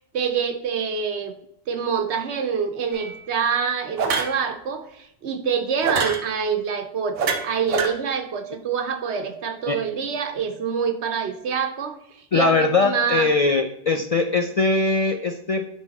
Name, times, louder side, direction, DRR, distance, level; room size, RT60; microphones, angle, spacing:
voice 1, 0.1-1.3 1.7-13.3, right 6 dB, 70° right, 6 dB, 1.1 m, -26 dB
sound 1, 2.9-3.2 4.0-4.4 5.8-6.2 7.2-7.9, right 5 dB, 90° right, 1.3 m, -24 dB
voice 2, 12.3-15.7, left 3 dB, 70° left, 6 dB, 0.3 m, -21 dB
9.3 x 3.6 x 4.0 m, 0.76 s
omnidirectional pair, 1.2 m